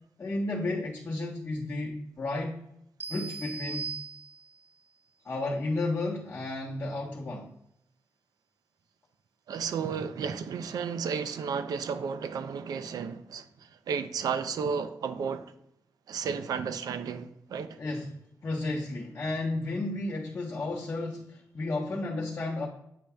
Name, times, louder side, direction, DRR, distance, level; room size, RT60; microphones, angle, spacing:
voice 1, 0.2-2.6 3.1-3.9 5.2-7.5 17.8-18.2 18.4-22.7, left 2 dB, 40° left, 1.1 m, -32 dB
sound 1, 3.0-4.7, right 5 dB, 30° right, 0.4 m, -39 dB
voice 2, 9.5-15.5 16.1-17.8, right 6 dB, 85° right, 0.5 m, -33 dB
8.4 x 5.3 x 2.3 m
cardioid pair, 85°, 6 cm